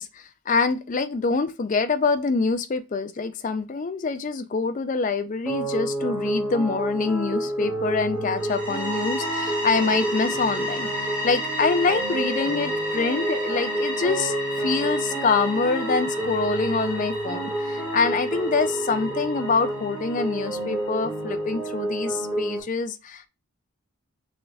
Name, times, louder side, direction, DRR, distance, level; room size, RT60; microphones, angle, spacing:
voice 1, 0.0-10.9 11.2-23.3, left 4 dB, 35° left, 0.3 m, -25 dB
sound 1, 5.5-22.6, right 1 dB, 5° right, 1.7 m, -29 dB
sound 2, 8.4-21.1, equal, 25° right, 1.3 m, -33 dB
6.2 x 3.4 x 2.3 m
head